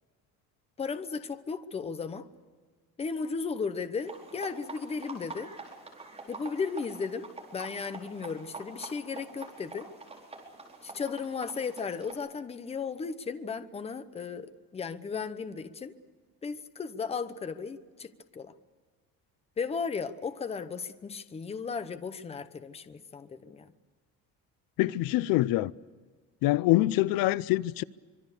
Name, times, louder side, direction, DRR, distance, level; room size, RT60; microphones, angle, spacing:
voice 1, 0.8-2.3 3.0-5.5 6.3-9.9 10.8-16.0 16.4-18.5 19.6-23.7, left 5 dB, 20° left, 0.9 m, -35 dB
sound 1, 3.9-12.1, right 3 dB, 20° right, 4.4 m, -46 dB
voice 2, 24.8-25.7 26.4-27.8, left 17 dB, 85° left, 0.7 m, -25 dB
25.5 x 23.0 x 6.8 m
cardioid pair, 175°, 34 cm